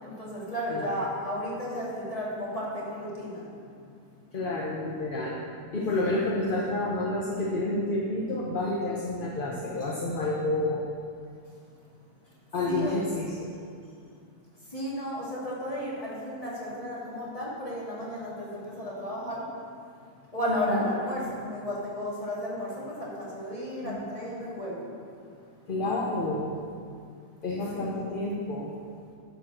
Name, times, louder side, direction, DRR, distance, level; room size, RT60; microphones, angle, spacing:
voice 1, 0.0-3.4 6.0-6.1 12.7-13.0 14.7-19.4 20.3-24.9 25.7-26.4 27.7-28.0, equal, 25° left, -7 dB, 2.5 m, -34 dB
voice 2, 4.3-5.4 5.7-10.8 12.5-13.5 20.5-20.8 23.8-24.0 25.7-26.5 27.4-28.7, left 2 dB, 40° left, -4 dB, 0.9 m, -29 dB
11.5 x 4.5 x 6.2 m, 2.3 s
omnidirectional pair, 1.6 m